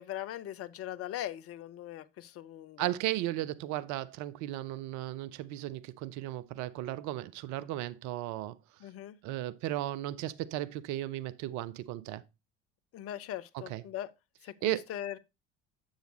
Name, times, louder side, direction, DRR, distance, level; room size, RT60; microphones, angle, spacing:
voice 1, 0.0-2.9 8.8-9.2 12.9-14.1 14.4-15.2, left 12 dB, 40° left, 0.7 m, -40 dB
voice 2, 2.8-8.6 9.2-12.2 13.7-13.8 14.6-14.8, right 14 dB, 50° right, 0.7 m, -35 dB
7.9 x 6.4 x 3.0 m
figure-of-eight pair, 60°, 36 cm